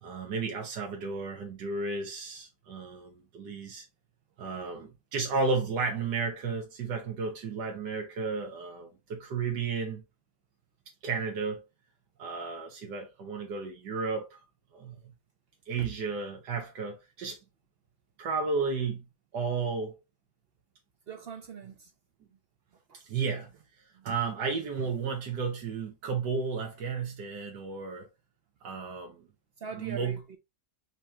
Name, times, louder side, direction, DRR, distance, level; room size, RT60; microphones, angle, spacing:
voice 1, 0.0-3.9 4.4-10.0 11.0-11.6 12.2-14.4 14.7-15.1 15.7-17.4 18.2-19.1 19.3-20.0 22.9-23.5 24.0-28.1 28.6-29.3 29.8-30.2, right 4 dB, 90° right, 1.7 m, -33 dB
voice 2, 21.1-21.9 22.9-23.0 23.9-24.1 29.6-30.4, right 6 dB, 65° right, 0.6 m, -42 dB
5.0 x 3.0 x 3.2 m
omnidirectional pair, 1.8 m